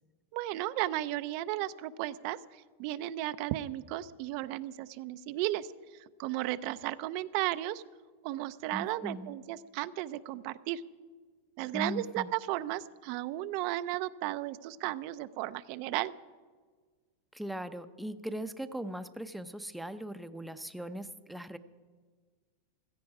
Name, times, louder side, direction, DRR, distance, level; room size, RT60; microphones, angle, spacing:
voice 1, 0.3-2.4 2.8-5.7 6.2-7.8 8.2-10.8 11.6-16.1, right 15 dB, 50° right, 14 dB, 0.5 m, -34 dB
voice 2, 8.7-9.4 11.7-12.3 17.3-21.6, right 1 dB, ahead, 10 dB, 0.6 m, -39 dB
16.0 x 14.5 x 4.8 m, 1.5 s
supercardioid pair, 145°, 0 cm